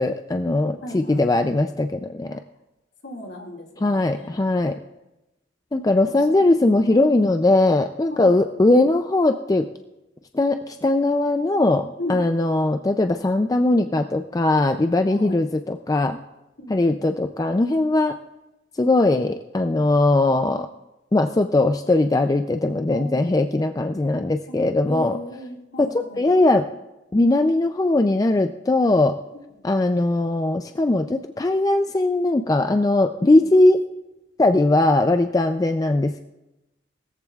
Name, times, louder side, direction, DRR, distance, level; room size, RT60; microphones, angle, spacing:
voice 1, 0.0-2.4 3.8-4.8 5.7-9.7 10.3-16.2 16.7-18.2 18.8-20.7 21.1-25.2 25.8-26.7 27.1-29.2 29.6-33.8 34.4-36.2, left 2 dB, 20° left, 7 dB, 0.3 m, -20 dB
voice 2, 0.8-1.4 3.0-4.6 6.0-6.5 6.9-7.3 8.1-8.4 12.0-12.2 15.1-15.4 16.6-17.0 22.9-23.4 24.9-26.3 33.2-33.6 35.6-35.7, left 1 dB, 60° left, 1 dB, 2.2 m, -36 dB
19.5 x 14.0 x 2.4 m, 0.97 s
head